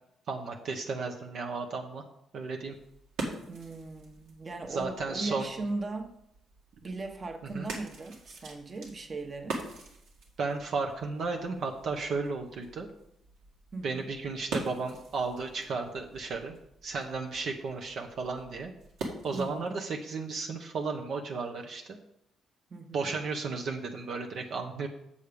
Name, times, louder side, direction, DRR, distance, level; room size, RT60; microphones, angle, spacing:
voice 1, 0.3-2.0 2.3-2.7 4.7-5.5 7.5-7.7 10.4-12.9 13.8-16.5 16.8-18.7 19.2-22.0 22.9-24.9, right 4 dB, 65° right, 3 dB, 0.9 m, -34 dB
sound 1, 2.6-19.7, right 3 dB, 85° right, 1.9 m, -44 dB
voice 2, 3.5-6.1 6.8-9.6 13.7-14.1 19.3-19.7 22.7-23.1, right 3 dB, 35° right, 5 dB, 1.2 m, -38 dB
7.0 x 6.5 x 5.1 m, 0.78 s
cardioid pair, 90°, 0 cm